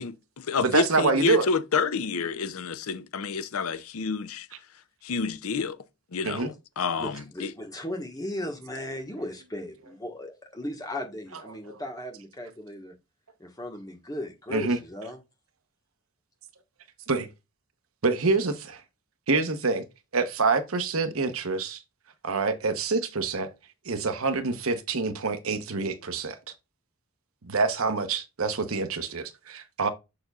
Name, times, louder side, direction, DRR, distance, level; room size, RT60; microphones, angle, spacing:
voice 1, 0.0-4.5 5.0-5.8 6.1-7.5, left 5 dB, 80° left, 0.6 m, -29 dB
voice 2, 0.6-1.5 6.2-6.5 11.7-11.8 14.5-14.8 17.1-17.3 18.0-18.8 19.3-19.8 20.1-21.8 22.2-23.5 23.8-26.4 27.4-29.9, right 4 dB, 70° right, 1.0 m, -26 dB
voice 3, 6.9-12.9 13.4-15.2, left 1 dB, 15° left, 1.4 m, -37 dB
6.8 x 6.7 x 2.4 m
head